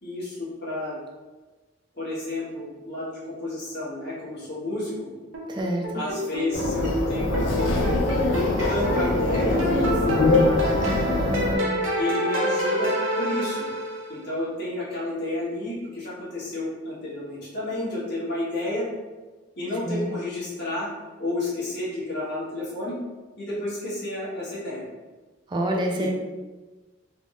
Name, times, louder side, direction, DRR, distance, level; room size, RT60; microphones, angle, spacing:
voice 1, 0.0-1.0 2.0-5.1 5.9-8.0 8.3-10.4 11.9-13.7 14.1-18.9 19.6-20.9 21.2-22.9 23.4-24.8 26.0-26.1, left 1 dB, 60° left, -8 dB, 1.5 m, -30 dB
sound 1, 5.3-14.2, equal, 85° right, 0.7 m, -28 dB
voice 2, 5.5-6.0 10.8-11.9 19.9-20.1 25.5-26.1, right 1 dB, 25° right, 0 dB, 0.3 m, -28 dB
sound 2, 6.5-11.6, left 2 dB, 80° left, 0.5 m, -23 dB
3.5 x 2.0 x 3.6 m, 1.3 s
head